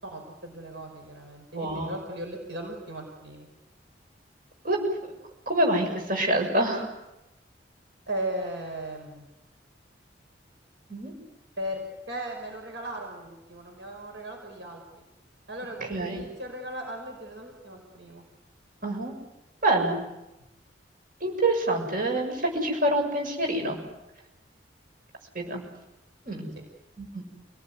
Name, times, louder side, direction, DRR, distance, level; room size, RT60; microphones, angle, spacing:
voice 1, 0.0-3.5 8.1-9.3 11.6-15.0 15.5-18.2, right 1 dB, 70° right, 2 dB, 5.5 m, -37 dB
voice 2, 1.5-1.9 4.6-4.8 5.4-6.9 10.9-11.1 15.8-16.3 18.8-19.1 19.6-20.0 21.2-23.8 25.3-25.6 26.2-26.5 27.0-27.2, right 1 dB, 50° right, 2 dB, 6.9 m, -26 dB
29.5 x 19.0 x 9.6 m, 0.95 s
head